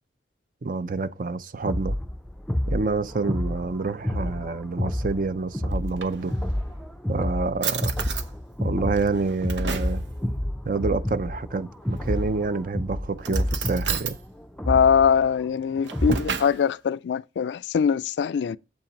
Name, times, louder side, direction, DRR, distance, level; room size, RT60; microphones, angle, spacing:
voice 1, 0.6-2.0 2.7-6.3 7.1-8.1 8.6-10.0 10.6-14.2 16.1-16.2, right 3 dB, 50° right, 0.5 m, -28 dB
sound 1, 1.6-16.4, left 1 dB, 5° left, 0.4 m, -29 dB
Drawer open or close, 5.7-6.7 7.2-7.3 7.6-8.3 8.9-10.0 11.9-12.4 13.2-14.2 15.6-16.6, right 7 dB, 90° right, 0.8 m, -33 dB
voice 2, 14.7-18.6, left 7 dB, 75° left, 0.3 m, -22 dB
7.5 x 5.7 x 5.2 m
head